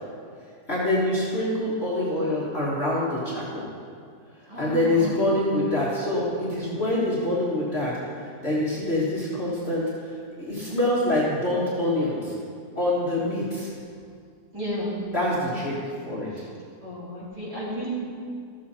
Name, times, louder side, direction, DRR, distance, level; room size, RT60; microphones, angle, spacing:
voice 1, 0.7-3.6 4.6-7.9 8.4-12.3 12.8-13.7 15.1-15.7 16.0-16.3, left 1 dB, 40° left, -7 dB, 1.7 m, -25 dB
voice 2, 4.5-5.2 14.5-15.0 16.3-16.4 16.8-17.9, equal, 20° right, -8 dB, 2.8 m, -33 dB
14.0 x 7.3 x 4.3 m, 2.2 s
omnidirectional pair, 1.9 m